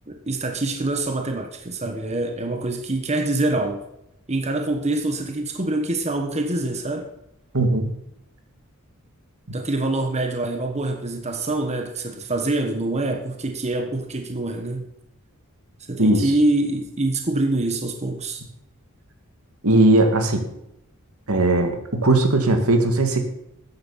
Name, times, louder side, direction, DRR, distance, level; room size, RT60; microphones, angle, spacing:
voice 1, 0.1-3.8 4.3-7.1 9.5-14.8 15.9-18.4, right 2 dB, 30° right, 4 dB, 1.3 m, -25 dB
voice 2, 7.5-7.9 16.0-16.2 19.6-20.4 21.3-23.3, right 2 dB, 75° right, 5 dB, 2.4 m, -18 dB
13.5 x 9.6 x 5.7 m, 0.80 s
head